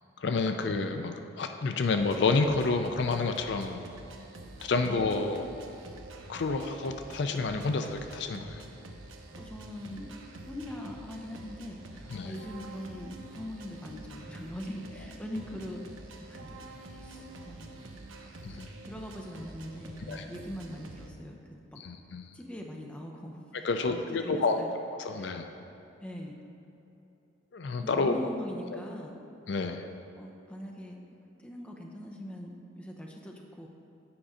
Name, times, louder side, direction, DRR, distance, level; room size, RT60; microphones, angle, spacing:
voice 1, 0.2-3.8 4.6-5.4 6.3-8.7 12.1-12.3 18.4-18.7 20.0-20.2 21.8-22.3 23.6-24.6 25.0-25.5 27.5-28.1 29.5-29.9, left 3 dB, 60° left, 6 dB, 0.4 m, -29 dB
sound 1, 2.0-21.1, right 2 dB, 85° right, 0.8 m, -47 dB
voice 2, 4.8-5.4 9.4-10.1 10.5-15.8 16.2-16.5 17.0-17.7 18.5-21.4 22.3-24.7 25.1-25.3 26.0-26.4 27.8-29.2 30.2-31.0 31.4-33.7, left 1 dB, 5° left, 0 dB, 0.6 m, -42 dB
8.7 x 5.3 x 5.0 m, 2.9 s
head